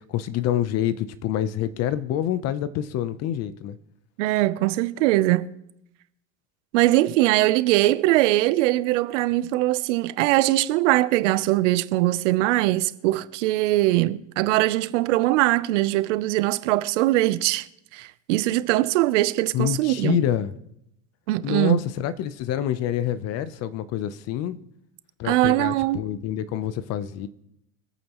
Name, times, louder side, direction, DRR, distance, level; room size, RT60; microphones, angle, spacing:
voice 1, 0.0-3.8 19.5-20.5 21.4-24.6 25.2-27.3, left 11 dB, 45° left, 0.8 m, -27 dB
voice 2, 4.2-5.5 6.7-17.7 17.9-20.2 21.3-21.8 25.2-26.0, right 17 dB, 80° right, 0.8 m, -21 dB
25.5 x 8.6 x 3.1 m
supercardioid pair, 140°, 36 cm